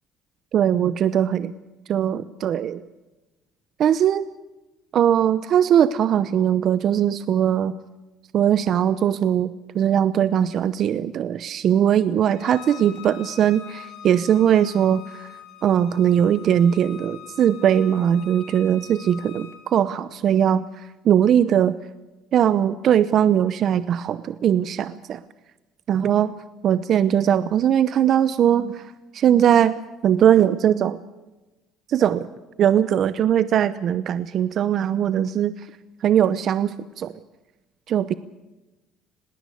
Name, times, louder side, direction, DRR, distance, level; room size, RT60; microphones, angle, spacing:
voice 1, 0.5-1.5 1.9-2.8 3.8-4.2 4.9-7.7 8.3-15.3 15.6-20.6 21.0-21.7 22.3-25.2 25.9-26.3 26.6-28.9 29.1-29.8 30.0-31.0 31.9-32.3 32.6-35.5 36.0-37.1 37.9-38.1, right 9 dB, 60° right, 14 dB, 0.8 m, -20 dB
Bowed string instrument, 12.3-19.6, left 10 dB, 80° left, 4.1 m, -43 dB
20.0 x 18.0 x 8.5 m, 1.1 s
supercardioid pair, 85°, 0 cm